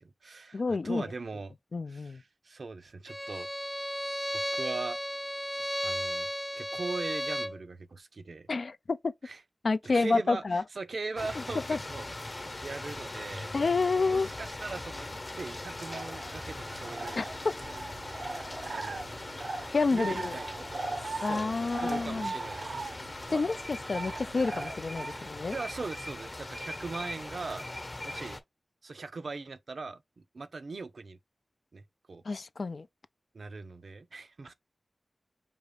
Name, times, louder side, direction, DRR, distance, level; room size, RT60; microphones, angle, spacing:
voice 1, 0.0-1.6 1.9-3.5 4.3-5.0 5.8-6.3 6.5-8.5 9.2-9.4 9.8-13.6 14.0-17.2 18.7-19.1 19.9-22.8 23.3-23.4 23.9-24.0 25.5-27.7 28.0-28.4 28.8-31.2 31.7-31.8 32.1-32.2 33.3-34.5, right 3 dB, 70° right, 0.6 m, -40 dB
voice 2, 0.5-1.0 1.7-2.2 8.5-9.1 9.6-10.6 11.7-11.8 13.5-14.3 17.2-17.3 19.7-20.4 21.2-22.3 23.3-25.5 32.3-32.9, left 3 dB, 65° left, 0.3 m, -29 dB
Bowed string instrument, 3.1-7.6, equal, 5° right, 0.4 m, -34 dB
sound 1, 11.2-28.4, left 2 dB, 40° left, 0.9 m, -41 dB
sound 2, 15.6-25.3, right 3 dB, 90° right, 1.3 m, -40 dB
5.1 x 2.4 x 3.3 m
cardioid pair, 55°, 0 cm